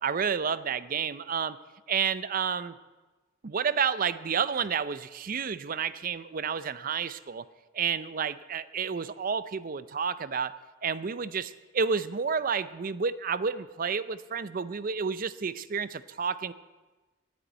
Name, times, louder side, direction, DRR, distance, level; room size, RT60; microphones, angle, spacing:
voice 1, 0.0-1.6 1.9-2.7 3.4-7.4 7.7-10.5 10.8-16.5, right 6 dB, 45° right, 15 dB, 0.5 m, -30 dB
11.0 x 9.8 x 9.3 m, 1.2 s
head